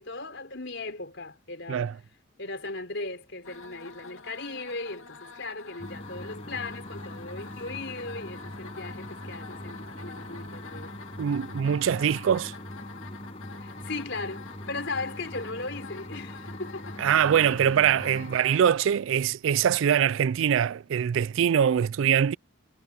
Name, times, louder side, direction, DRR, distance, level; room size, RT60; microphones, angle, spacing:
voice 1, 0.0-2.0 2.4-11.0 13.6-17.0, left 3 dB, 60° left, 4.7 m, -37 dB
sound 1, 3.4-18.7, left 5 dB, 80° left, 2.2 m, -47 dB
sound 2, 5.8-18.4, left 1 dB, 30° left, 6.0 m, -42 dB
voice 2, 11.2-12.5 17.0-22.4, right 8 dB, 65° right, 0.3 m, -23 dB
head